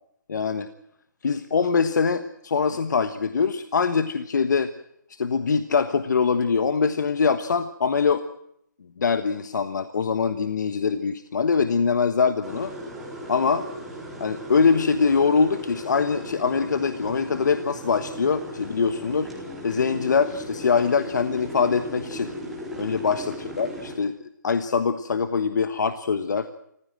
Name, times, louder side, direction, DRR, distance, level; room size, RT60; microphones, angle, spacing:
voice 1, 0.3-0.7 1.2-4.7 5.1-8.2 9.0-12.7 13.3-13.6 14.2-19.3 19.6-22.3 22.8-24.1 24.4-26.5, left 5 dB, 70° left, 11 dB, 1.4 m, -23 dB
sound 1, 12.4-24.0, equal, ahead, 4.4 m, -37 dB
25.5 x 15.5 x 7.7 m, 0.74 s
hypercardioid pair, 160°, 10 cm